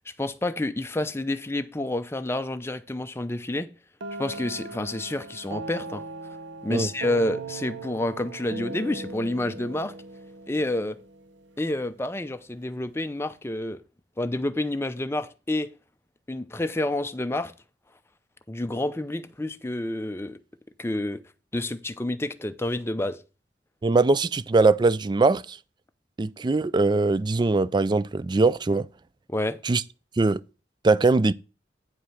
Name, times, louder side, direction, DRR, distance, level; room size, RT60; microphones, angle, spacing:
voice 1, 0.2-3.7 4.2-6.0 6.6-9.9 10.5-11.0 11.6-13.8 14.2-15.7 16.3-17.5 18.5-20.4 20.8-21.2 21.5-23.2 29.3-29.6, left 1 dB, 15° left, 0.6 m, -29 dB
sound 1, 4.0-11.7, right 3 dB, 80° right, 0.8 m, -39 dB
voice 2, 23.8-25.6 26.2-28.9 29.6-29.8 30.2-30.4 30.8-31.3, right 3 dB, 25° right, 0.3 m, -21 dB
9.3 x 4.9 x 5.6 m
head